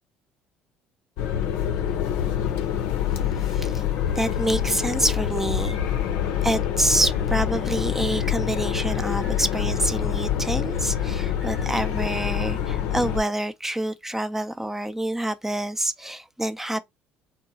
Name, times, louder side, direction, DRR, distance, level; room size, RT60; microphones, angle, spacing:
sound 1, 1.2-13.2, left 9 dB, 75° left, 0.6 m, -26 dB
voice 1, 3.5-3.8 4.1-5.8 6.4-16.8, right 1 dB, 10° right, 0.5 m, -27 dB
3.7 x 2.2 x 2.8 m
hypercardioid pair, 70°, 4 cm